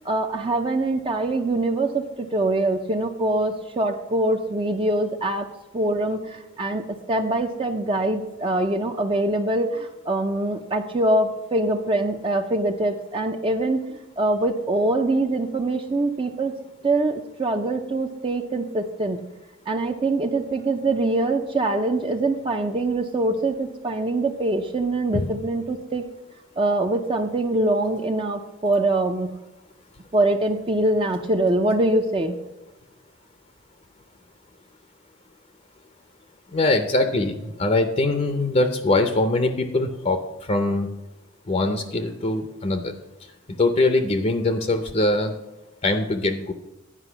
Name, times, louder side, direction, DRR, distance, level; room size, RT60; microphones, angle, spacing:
voice 1, 0.1-5.5 5.7-16.6 16.8-19.2 19.7-26.0 26.6-29.3 30.1-32.3, right 2 dB, 25° right, 5 dB, 0.5 m, -24 dB
voice 2, 36.5-37.3 37.6-40.2 40.5-40.9 41.5-42.9 43.6-45.3 45.8-46.5, left 2 dB, 35° left, 8 dB, 0.6 m, -22 dB
9.9 x 5.3 x 6.8 m, 1.0 s
head